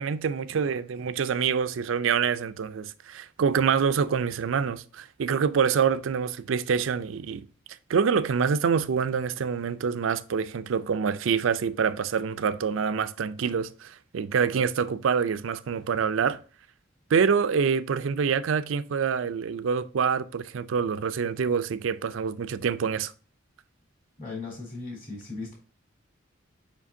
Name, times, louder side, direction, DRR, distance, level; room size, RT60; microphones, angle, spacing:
voice 1, 0.0-7.5 7.9-16.4 17.1-23.1, right 6 dB, 70° right, 0.4 m, -26 dB
voice 2, 24.2-25.6, left 3 dB, 45° left, 3.3 m, -37 dB
7.3 x 5.1 x 2.7 m
head